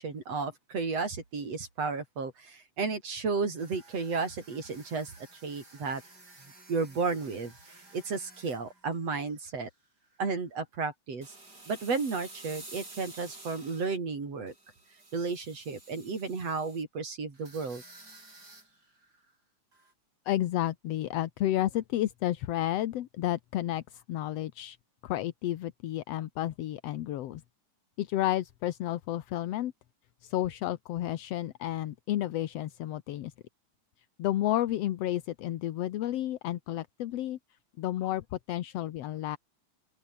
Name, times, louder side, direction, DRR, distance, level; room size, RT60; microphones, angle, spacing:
voice 1, 0.0-5.1 5.4-6.0 6.7-7.5 7.9-9.7 10.2-11.3 11.7-14.5 15.1-17.8, right 4 dB, 55° right, 5.5 m, -33 dB
sound 1, 3.6-9.7 10.0-10.3 11.2-14.0 14.5-16.8 17.3-19.3 19.7-19.9, right 2 dB, 30° right, 7.6 m, -52 dB
voice 2, 20.3-24.8 25.0-27.4 28.0-29.7 30.2-33.3 34.2-37.4 37.8-39.4, left 13 dB, 65° left, 1.8 m, -31 dB
open air
omnidirectional pair, 3.5 m